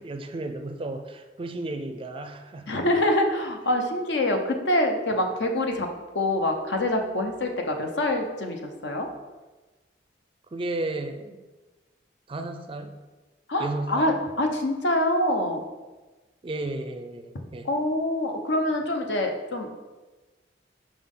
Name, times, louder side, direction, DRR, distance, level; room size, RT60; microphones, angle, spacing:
voice 1, 0.0-2.8 10.5-11.4 12.3-13.0 13.6-14.2 16.4-17.7, right 2 dB, 30° right, 7 dB, 0.4 m, -33 dB
voice 2, 2.7-5.9 6.1-9.1 13.5-15.6 17.6-19.7, left 1 dB, 70° left, 4 dB, 0.8 m, -25 dB
5.8 x 5.0 x 3.7 m, 1.2 s
head